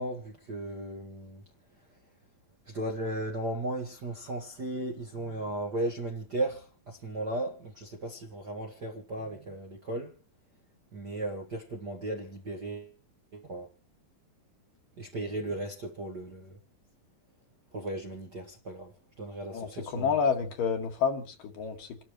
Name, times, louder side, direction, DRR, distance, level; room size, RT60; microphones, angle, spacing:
voice 1, 0.0-1.4 2.6-10.1 10.9-12.9 13.3-13.7 15.0-16.6 17.7-20.1, right 1 dB, 45° right, 1.5 m, -36 dB
voice 2, 19.5-22.0, left 6 dB, 70° left, 3.5 m, -29 dB
29.0 x 12.0 x 3.1 m
omnidirectional pair, 4.1 m